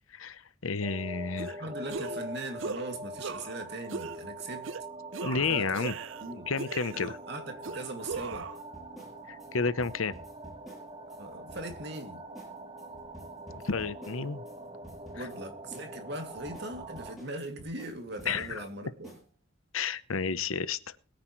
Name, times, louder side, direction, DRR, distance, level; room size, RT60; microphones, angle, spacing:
voice 1, 0.1-1.6 5.2-5.9 6.5-7.2 9.3-10.1 13.5-14.4 15.2-15.3 18.3-18.6 19.7-21.0, left 5 dB, 80° left, 0.9 m, -31 dB
sound 1, 0.8-17.2, right 1 dB, 25° right, 0.9 m, -44 dB
sound 2, 1.4-1.6 1.9-2.3 2.6-2.8 3.2-3.6 3.9-4.2 4.6-4.8 5.1-6.3 6.6-7.2 7.6-8.6, right 5 dB, 70° right, 0.6 m, -38 dB
voice 2, 1.6-4.7 5.3-5.9 6.2-6.5 6.9-8.5 11.2-12.2 15.1-19.1, right 1 dB, 50° right, 2.7 m, -40 dB
sound 3, 8.1-11.2 11.5-12.0 12.4-12.5 12.8-14.6 14.8-15.4 15.7-18.7 19.0-19.2, right 1 dB, ahead, 6.3 m, -50 dB
21.5 x 9.5 x 3.2 m
head